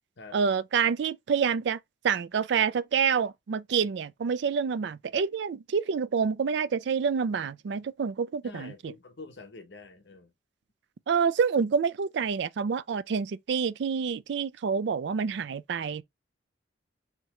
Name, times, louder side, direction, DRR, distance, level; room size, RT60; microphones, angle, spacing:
voice 1, 0.3-1.8 2.0-8.9 11.1-16.0, right 6 dB, 60° right, 0.3 m, -27 dB
voice 2, 8.4-10.3, left 3 dB, 60° left, 0.9 m, -46 dB
3.6 x 2.9 x 3.0 m
head